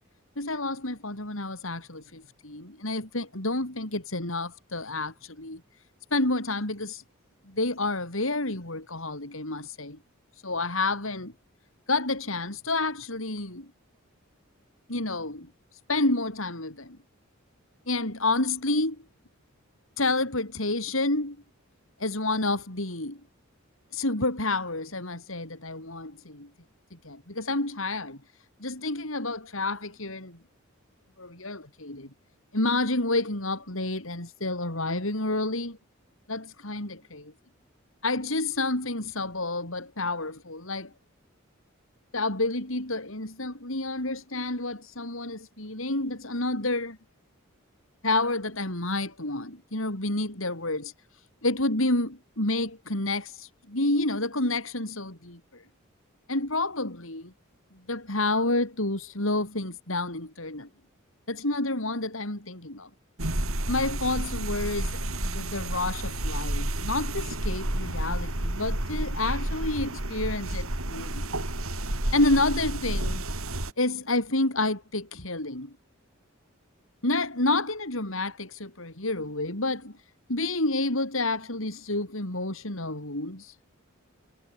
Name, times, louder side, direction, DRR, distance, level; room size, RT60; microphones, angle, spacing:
voice 1, 0.4-5.6 6.1-7.0 7.5-10.0 10.4-11.3 11.9-13.7 14.9-15.5 15.9-17.0 17.9-19.0 20.0-21.4 22.0-23.2 23.9-26.5 27.0-28.2 28.6-30.4 31.2-32.1 32.5-35.8 36.3-37.3 38.0-40.9 42.1-47.0 48.0-50.9 51.4-55.6 56.3-57.3 57.9-60.7 61.3-62.9 63.7-71.2 72.1-73.2 73.8-75.7 77.0-79.9 80.3-83.6, left 2 dB, 70° left, 5.3 m, -29 dB
sound 1, 63.2-73.7, right 1 dB, 80° right, 4.5 m, -30 dB
head